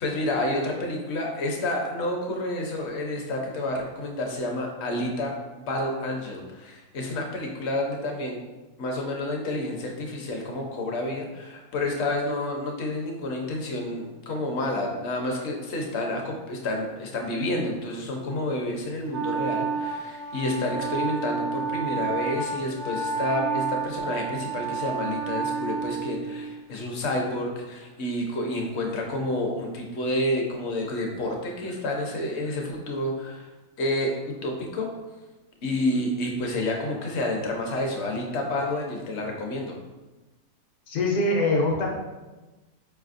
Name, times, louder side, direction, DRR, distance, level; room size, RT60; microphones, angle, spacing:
voice 1, 0.0-8.4 8.8-33.5 33.8-34.1 34.4-34.9 35.6-39.8, left 1 dB, 55° left, 1 dB, 0.8 m, -29 dB
Wind instrument woodwind instrument, 19.1-26.6, right 5 dB, 65° right, 0.7 m, -30 dB
voice 2, 40.9-41.9, left 2 dB, 75° left, -1 dB, 1.3 m, -23 dB
4.7 x 3.3 x 2.5 m, 1.1 s
omnidirectional pair, 1.6 m